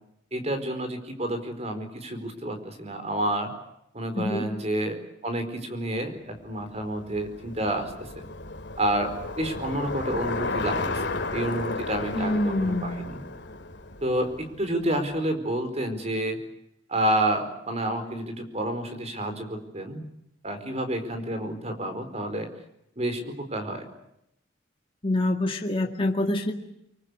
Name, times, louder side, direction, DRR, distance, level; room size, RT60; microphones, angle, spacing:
voice 1, 0.3-3.5 3.9-8.2 8.8-13.2 14.0-16.4 16.9-20.1 20.4-22.5 23.0-23.8, right 1 dB, 35° right, 7 dB, 4.6 m, -29 dB
Bicycle, 6.5-14.8, left 3 dB, 65° left, 2.9 m, -33 dB
voice 2, 12.1-13.0 25.0-26.5, left 1 dB, 30° left, 2 dB, 2.1 m, -26 dB
25.5 x 24.0 x 8.3 m, 0.79 s
head